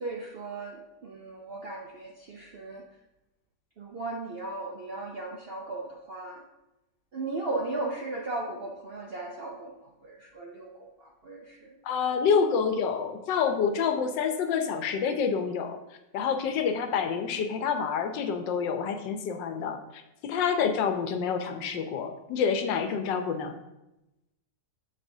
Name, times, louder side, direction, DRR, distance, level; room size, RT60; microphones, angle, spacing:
voice 1, 0.0-2.9 3.8-6.4 7.1-11.8, right 2 dB, 60° right, -1 dB, 0.6 m, -37 dB
voice 2, 11.8-15.8 16.1-19.8 20.2-23.6, left 6 dB, 80° left, 7 dB, 1.4 m, -27 dB
7.4 x 6.6 x 2.7 m, 0.93 s
omnidirectional pair, 2.0 m